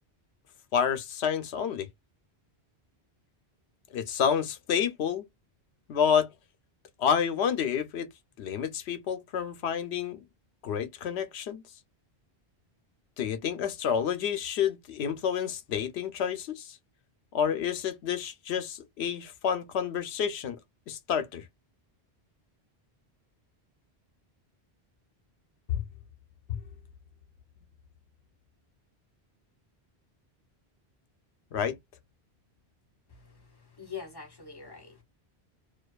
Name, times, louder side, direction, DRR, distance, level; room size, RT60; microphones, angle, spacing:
voice 1, 0.7-1.9 3.9-5.3 5.9-6.3 7.0-8.1 8.4-10.2 10.6-11.6 13.2-16.8 17.3-20.6 20.9-21.4 31.5-31.8, left 7 dB, 80° left, 0.8 m, -29 dB
voice 2, 33.1-35.0, left 6 dB, 25° left, 0.7 m, -44 dB
2.5 x 2.3 x 2.2 m
omnidirectional pair, 1.1 m